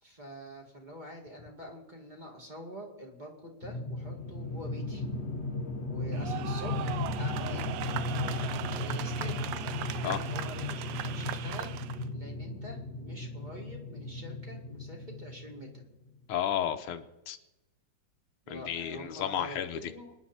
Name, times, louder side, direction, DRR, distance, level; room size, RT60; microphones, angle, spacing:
voice 1, 0.0-5.1 5.9-7.7 8.3-9.5 10.0-11.8 12.1-15.8 18.5-20.1, equal, 20° right, 0 dB, 2.2 m, -46 dB
sound 1, 3.6-15.8, left 2 dB, 40° left, 1.2 m, -36 dB
sound 2, 6.1-12.0, right 11 dB, 80° right, 1.6 m, -38 dB
voice 2, 16.3-17.4 18.5-19.8, left 10 dB, 80° left, 8 dB, 1.8 m, -32 dB
26.0 x 10.0 x 4.3 m, 0.99 s
omnidirectional pair, 2.4 m